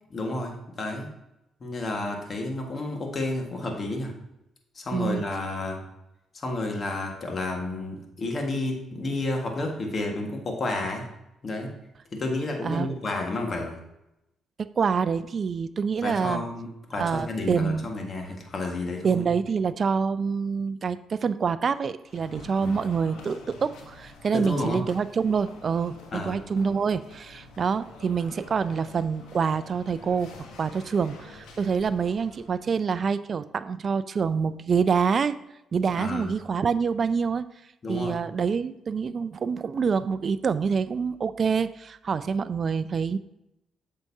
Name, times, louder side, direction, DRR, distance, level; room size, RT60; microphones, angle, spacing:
voice 1, 0.1-1.1 1.6-4.1 4.7-5.8 6.3-11.1 11.4-11.7 12.1-13.8 16.0-19.3 22.6-22.8 24.3-24.8 26.1-26.4 35.9-36.3 37.8-38.2, left 2 dB, 40° left, 2 dB, 1.6 m, -31 dB
voice 2, 4.9-5.3 12.6-12.9 14.6-16.5 17.0-17.9 19.0-35.4 35.7-37.5 37.9-43.2, right 6 dB, 45° right, 13 dB, 0.3 m, -26 dB
sound 1, 22.1-32.7, left 3 dB, 90° left, 1.1 m, -48 dB
8.1 x 6.5 x 2.7 m, 0.87 s
cardioid pair, 90°, 0 cm